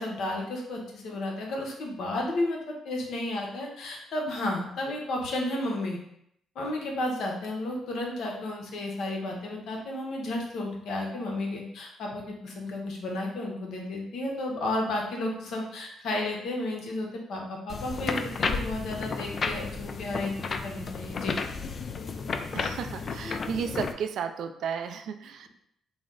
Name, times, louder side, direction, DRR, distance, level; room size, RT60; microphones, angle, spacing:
voice 1, 0.0-6.0 6.5-20.3 20.6-21.4, left 1 dB, 75° left, 0 dB, 0.9 m, -32 dB
sound 1, 17.7-23.9, left 4 dB, 45° left, 0.3 m, -33 dB
voice 2, 22.5-25.5, right 7 dB, 70° right, 7 dB, 0.3 m, -33 dB
4.0 x 2.0 x 3.7 m, 0.73 s
cardioid pair, 90°, 0 cm